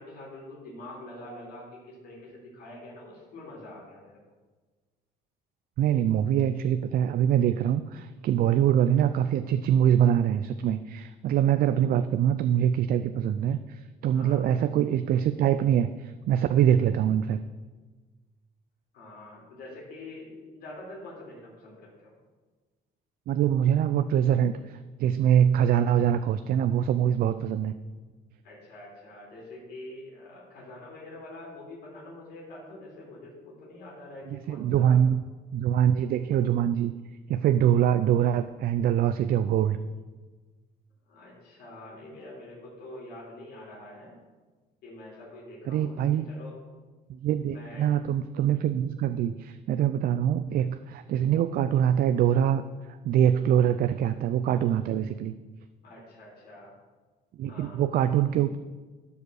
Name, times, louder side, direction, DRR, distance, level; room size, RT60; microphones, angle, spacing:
voice 1, 0.0-4.2 14.1-14.5 18.9-22.1 28.4-35.0 41.1-44.1 44.8-46.6 47.5-47.9 55.8-56.7 57.5-57.8, left 1 dB, 70° left, -4 dB, 3.8 m, -45 dB
voice 2, 5.8-17.4 23.3-27.7 34.3-35.2 35.5-36.9 37.3-39.8 45.7-46.3 47.1-55.3 57.4-58.6, right 10 dB, 60° right, 11 dB, 0.4 m, -24 dB
11.5 x 5.0 x 6.4 m, 1.3 s
cardioid pair, 110°, 17 cm